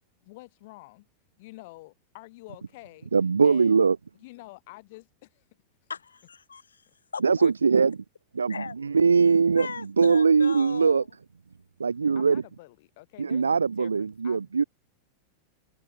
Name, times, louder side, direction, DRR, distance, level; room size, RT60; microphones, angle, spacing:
voice 1, 0.2-1.1 1.4-3.1 3.4-3.7 4.2-5.4 7.4-7.5 12.1-13.9 14.2-14.7, left 21 dB, 50° left, 3.1 m, -48 dB
voice 2, 3.1-4.0 7.2-8.0 8.3-11.0 11.8-12.4 13.2-14.6, right 5 dB, 75° right, 0.9 m, -21 dB
voice 3, 5.9-6.8 7.1-7.5 8.5-8.7 9.6-11.1, left 5 dB, 75° left, 3.1 m, -38 dB
figure-of-eight pair, 90°, 0 cm